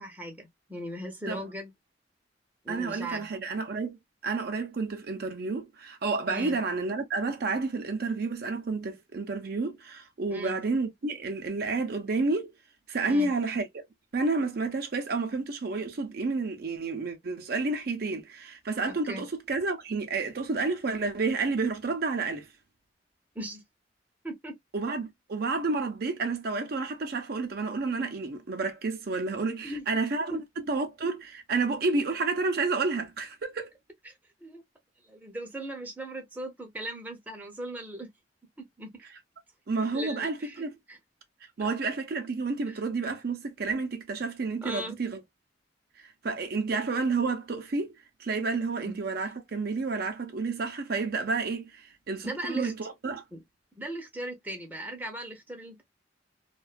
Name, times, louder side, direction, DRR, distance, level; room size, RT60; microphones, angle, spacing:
voice 1, 0.0-1.7 2.6-3.3 6.3-6.6 10.3-10.6 13.0-13.3 19.1-19.3 23.3-23.6 24.2-24.6 29.6-29.9 30.3-30.4 34.0-34.1 34.4-34.6 35.0-38.1 38.6-38.9 39.9-41.0 42.7-42.8 44.6-45.0 48.8-48.9 52.2-52.7 53.3-53.4 53.8-55.8, right 1 dB, 10° right, 0.6 m, -38 dB
voice 2, 2.7-4.0 4.2-12.5 12.9-13.8 14.1-22.5 24.7-30.3 30.7-33.7 39.7-40.7 41.6-45.2 46.2-47.9 48.2-53.2, right 3 dB, 55° right, 0.6 m, -30 dB
2.4 x 2.3 x 2.3 m
head